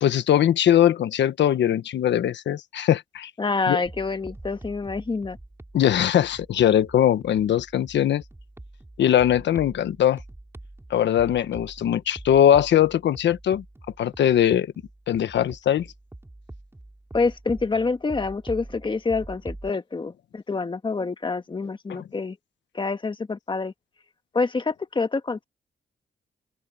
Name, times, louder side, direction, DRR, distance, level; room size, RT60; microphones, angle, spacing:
voice 1, 0.0-3.3 3.7-3.8 5.7-8.2 9.0-10.2 10.9-13.6 14.0-14.7 15.1-15.9 21.9-22.0, left 10 dB, 85° left, 1.2 m, -21 dB
voice 2, 3.4-5.4 17.1-22.4 22.7-23.7 24.3-25.4, left 4 dB, 25° left, 1.5 m, -27 dB
sound 1, 3.8-19.7, right 2 dB, 15° right, 6.3 m, -44 dB
open air
cardioid pair, 105°, 18 cm